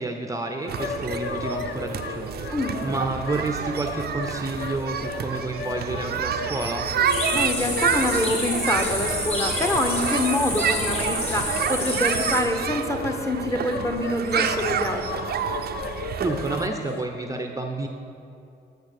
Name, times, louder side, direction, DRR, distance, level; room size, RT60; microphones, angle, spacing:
voice 1, 0.0-2.5 2.8-6.9 16.2-17.9, right 2 dB, 20° right, 4 dB, 0.6 m, -30 dB
sound 1, 0.6-17.0, left 5 dB, 90° left, 0.6 m, -36 dB
sound 2, 0.7-16.7, right 7 dB, 60° right, 0.5 m, -29 dB
voice 2, 2.5-2.8 7.3-15.3, left 1 dB, 15° left, 3 dB, 1.0 m, -26 dB
sound 3, 7.1-12.4, left 1 dB, 35° left, 2.6 m, -29 dB
8.7 x 6.6 x 6.6 m, 2.6 s
cardioid pair, 95°, 18 cm